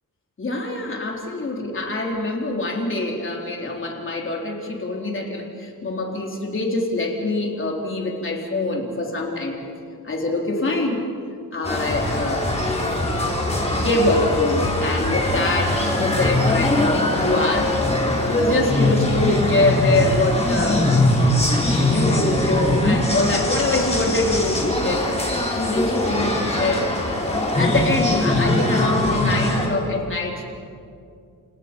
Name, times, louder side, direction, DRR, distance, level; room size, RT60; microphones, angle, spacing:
voice 1, 0.4-9.5 10.0-11.0 11.5-12.5 13.1-13.2 13.7-17.8 18.3-26.9 27.6-30.4, left 2 dB, 35° left, 0 dB, 3.8 m, -24 dB
sound 1, 11.6-29.7, left 1 dB, 15° left, 4.2 m, -21 dB
29.0 x 29.0 x 5.4 m, 2.4 s
wide cardioid pair, 135°, 37 cm